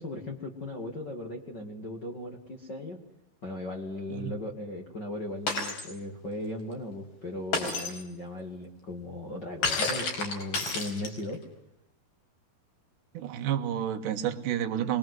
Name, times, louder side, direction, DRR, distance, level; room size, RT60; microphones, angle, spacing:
voice 1, 0.0-3.0 3.4-11.4, left 1 dB, 35° left, 0 dB, 2.0 m, -37 dB
Shatter, 5.5-5.9 7.5-8.0 9.6-11.3, left 3 dB, 55° left, 6.3 m, -30 dB
voice 2, 13.1-15.0, right 10 dB, 60° right, 6 dB, 2.9 m, -30 dB
23.5 x 22.5 x 7.9 m, 0.81 s
omnidirectional pair, 4.8 m